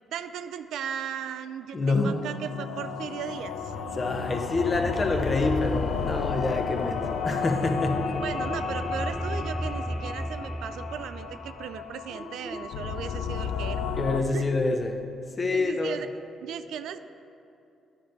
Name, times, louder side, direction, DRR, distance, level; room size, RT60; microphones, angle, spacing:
voice 1, 0.1-3.7 8.2-13.8 14.3-14.5 15.5-16.1 16.4-17.0, right 8 dB, 80° right, 11 dB, 0.3 m, -36 dB
voice 2, 1.7-2.2 3.9-8.2 14.0-16.0, left 3 dB, 40° left, 4 dB, 0.8 m, -27 dB
sound 1, 2.0-14.2, left 6 dB, 85° left, 0.3 m, -33 dB
sound 2, 3.3-12.7, equal, 5° right, 0.4 m, -37 dB
10.0 x 5.2 x 4.5 m, 2.7 s
supercardioid pair, 65°, 0 cm